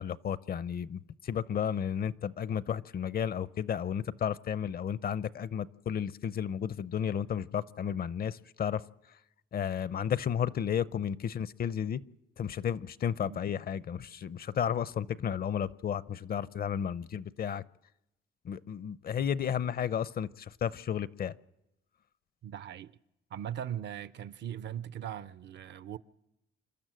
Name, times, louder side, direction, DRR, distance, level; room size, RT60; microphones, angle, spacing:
voice 1, 0.0-8.8 9.5-12.0 12.4-17.6 18.4-21.3, left 8 dB, 50° left, 0.6 m, -33 dB
voice 2, 22.4-22.9 23.3-26.0, right 10 dB, 65° right, 0.7 m, -39 dB
28.5 x 12.5 x 7.7 m
cardioid pair, 90°, 20 cm